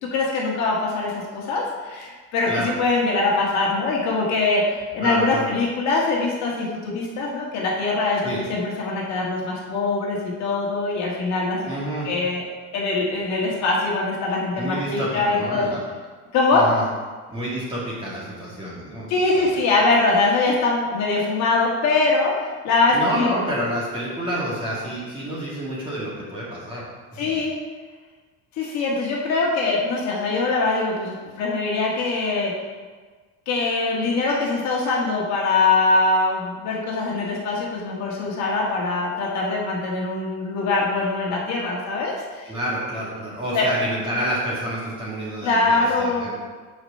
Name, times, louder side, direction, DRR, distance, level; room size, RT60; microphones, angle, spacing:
voice 1, 0.0-11.6 12.0-12.4 12.7-15.7 16.3-16.6 19.1-23.4 27.2-27.6 28.6-32.5 33.5-42.5 43.5-43.7 45.4-46.3, left 3 dB, 50° left, -3 dB, 1.7 m, -23 dB
voice 2, 5.0-5.5 8.2-8.4 11.7-12.1 14.6-15.8 16.5-16.8 17.3-19.5 22.9-26.9 27.2-27.4 42.5-46.4, right 1 dB, 15° right, -7 dB, 2.2 m, -29 dB
6.1 x 5.1 x 6.6 m, 1.4 s
cardioid pair, 170°, 34 cm